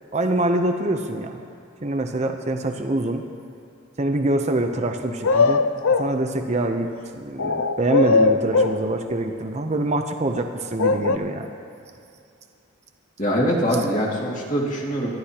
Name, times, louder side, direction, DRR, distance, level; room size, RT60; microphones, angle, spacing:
voice 1, 0.1-1.4 1.8-3.2 4.0-5.6 6.0-11.5, right 1 dB, 30° right, 4 dB, 0.7 m, -24 dB
sound 1, 5.2-6.1 7.4-8.8 10.8-11.2, left 4 dB, 75° left, 0.6 m, -19 dB
voice 2, 13.2-15.1, equal, 40° left, -3 dB, 2.2 m, -23 dB
23.0 x 13.0 x 2.9 m, 2.6 s
head